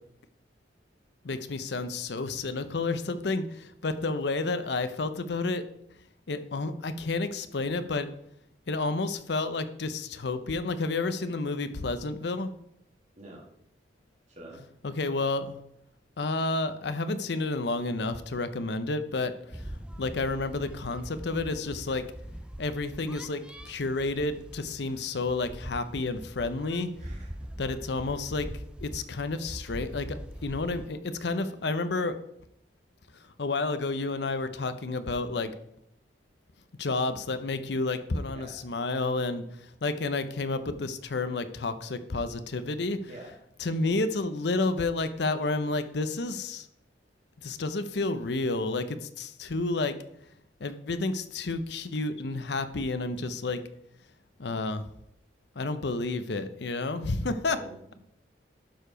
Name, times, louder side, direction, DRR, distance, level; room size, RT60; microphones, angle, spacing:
voice 1, 1.2-5.6 6.3-8.1 8.7-12.5 14.8-15.6 16.2-19.6 20.0-22.1 22.6-26.9 27.6-28.5 28.8-32.2 33.4-35.5 36.8-39.5 39.8-46.7 47.4-50.0 50.6-53.6 54.4-54.9 55.6-57.6, left 3 dB, 65° left, 11 dB, 0.7 m, -30 dB
voice 2, 14.3-14.6 27.0-27.5 38.3-38.6 43.1-43.3 57.5-57.9, right 1 dB, 40° right, -3 dB, 1.8 m, -47 dB
sound 1, 19.5-30.9, equal, 5° right, 0.4 m, -42 dB
11.5 x 4.7 x 5.0 m, 0.76 s
head